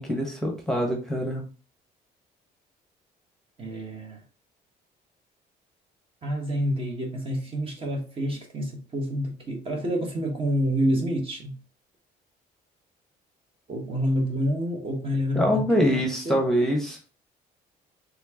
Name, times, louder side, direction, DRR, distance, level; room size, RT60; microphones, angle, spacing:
voice 1, 0.0-1.4 15.3-17.0, equal, 5° left, 1.1 m, -24 dB
voice 2, 3.6-4.2 6.2-11.6 13.7-16.4, equal, 35° right, 1.3 m, -28 dB
4.3 x 3.4 x 2.9 m
cardioid pair, 110°, 17 cm